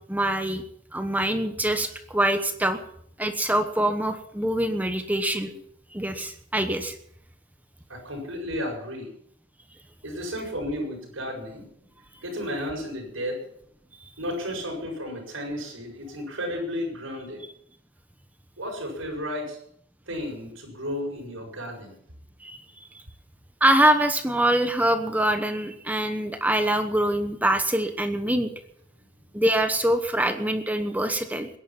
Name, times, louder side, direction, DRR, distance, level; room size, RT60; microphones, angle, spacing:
voice 1, 0.1-0.6 0.9-2.8 3.2-5.6 5.9-7.0 22.4-22.6 22.9-23.0 23.6-28.5 29.3-31.5, right 1 dB, 10° right, 8 dB, 1.1 m, -24 dB
voice 2, 7.9-9.1 10.0-11.7 12.2-13.5 14.2-17.4 18.6-19.6 20.1-22.0, equal, 75° right, 2 dB, 7.0 m, -33 dB
21.5 x 11.0 x 6.0 m, 0.68 s
head